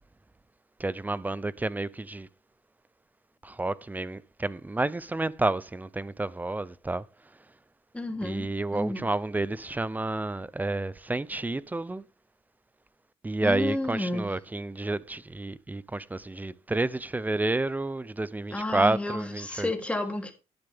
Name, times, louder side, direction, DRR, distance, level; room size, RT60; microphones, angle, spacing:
voice 1, 0.8-2.3 3.4-7.0 8.2-12.0 13.2-19.7, right 2 dB, 15° right, 0.6 m, -30 dB
voice 2, 7.9-9.1 13.4-14.3 18.5-20.3, left 1 dB, 10° left, 3.3 m, -31 dB
11.5 x 10.5 x 3.6 m
cardioid pair, 95°, 13 cm